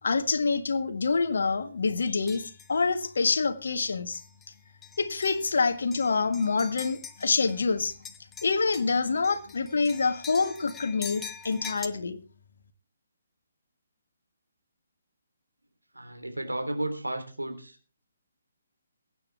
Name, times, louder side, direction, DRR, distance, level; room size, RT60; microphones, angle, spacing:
voice 1, 0.0-4.2 5.0-8.0 8.4-12.2, left 4 dB, 60° left, 9 dB, 1.7 m, -26 dB
sound 1, 2.3-2.8 3.3-3.4 4.1-4.5 4.8-7.6 7.9-11.9, left 7 dB, 10° left, 0.9 m, -44 dB
voice 2, 15.9-17.8, right 1 dB, 85° right, 5 dB, 3.4 m, -33 dB
23.0 x 9.3 x 3.5 m, 0.37 s
figure-of-eight pair, 135°, 0 cm